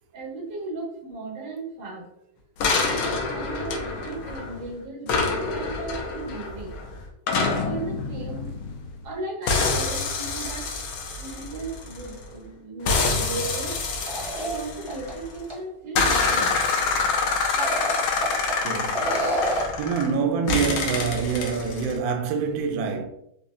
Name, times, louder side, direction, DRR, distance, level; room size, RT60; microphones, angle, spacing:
voice 1, 0.1-2.0 2.7-6.7 7.3-8.5 9.0-10.6 11.2-13.7 14.4-16.5, right 3 dB, 90° right, 1.9 m, -36 dB
sound 1, 2.6-4.6 5.1-9.1 9.5-12.2 12.9-15.3 16.0-20.1 20.5-22.0, left 4 dB, 85° left, 1.4 m, -26 dB
sound 2, 14.1-15.1 15.5-15.6 17.4-18.5 18.9-19.8, right 1 dB, 30° right, 0.6 m, -28 dB
voice 2, 18.6-19.3 19.8-23.1, right 6 dB, 70° right, 0.9 m, -26 dB
4.3 x 2.7 x 2.5 m
omnidirectional pair, 2.0 m